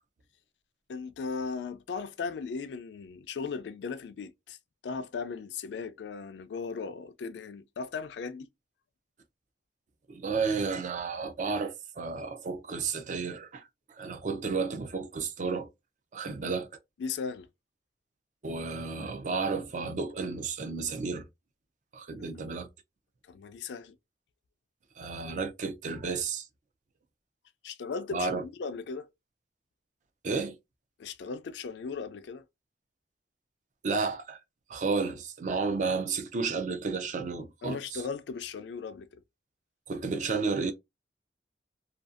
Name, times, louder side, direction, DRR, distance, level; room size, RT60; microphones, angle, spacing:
voice 1, 0.9-4.6 4.8-8.5 16.3-16.5 17.0-17.5 23.3-24.0 27.6-29.1 31.0-32.4 37.6-39.2, left 5 dB, 75° left, 0.3 m, -37 dB
voice 2, 10.1-13.7 14.0-15.7 16.1-16.7 18.4-21.3 21.9-22.7 25.0-26.5 28.1-28.4 30.2-30.5 33.8-34.4 34.7-38.0 39.9-40.7, right 4 dB, 45° right, 0.4 m, -32 dB
2.5 x 2.3 x 2.4 m
head